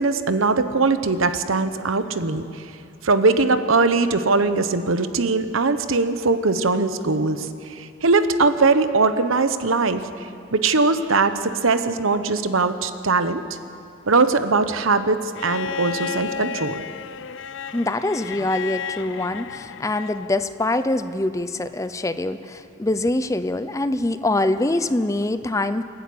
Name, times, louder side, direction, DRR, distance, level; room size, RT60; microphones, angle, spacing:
voice 1, 0.0-2.7 3.0-13.4 14.1-16.8, right 3 dB, 85° right, 10 dB, 1.0 m, -21 dB
Bowed string instrument, 15.3-20.4 21.8-21.9, left 7 dB, 65° left, 0.6 m, -33 dB
voice 2, 17.7-25.8, left 2 dB, 15° left, 12 dB, 0.5 m, -24 dB
28.0 x 11.0 x 8.6 m, 2.6 s
head